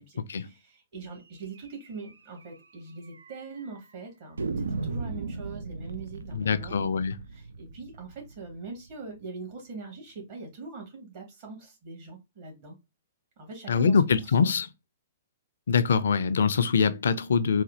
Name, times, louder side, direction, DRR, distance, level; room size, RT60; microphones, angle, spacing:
voice 1, 0.0-7.0 7.3-12.8 13.4-14.0 14.4-14.5, right 4 dB, 50° right, 2.0 m, -42 dB
sound 1, 1.6-1.7 2.0-2.1 2.4-2.5 3.1-3.7 4.4-9.2, right 3 dB, 85° right, 0.4 m, -37 dB
voice 2, 6.3-7.2 13.7-14.7 15.7-17.6, left 6 dB, 70° left, 0.4 m, -24 dB
4.2 x 2.3 x 2.7 m
hypercardioid pair, 125°, 0 cm